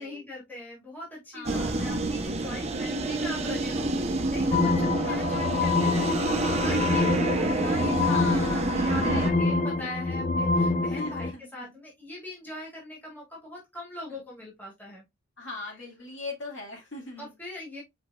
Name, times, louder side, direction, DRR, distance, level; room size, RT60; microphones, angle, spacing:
voice 1, 0.0-15.0 17.2-17.8, left 2 dB, 10° left, 1.9 m, -41 dB
voice 2, 1.3-1.9 3.1-3.4 5.0-5.4 8.1-9.6 10.8-11.7 14.1-14.2 15.4-17.3, left 3 dB, 60° left, 2.2 m, -41 dB
sound 1, 1.4-9.3, right 2 dB, 30° right, 0.7 m, -28 dB
sound 2, 4.5-11.3, left 3 dB, 35° left, 0.4 m, -26 dB
4.9 x 4.6 x 2.3 m
head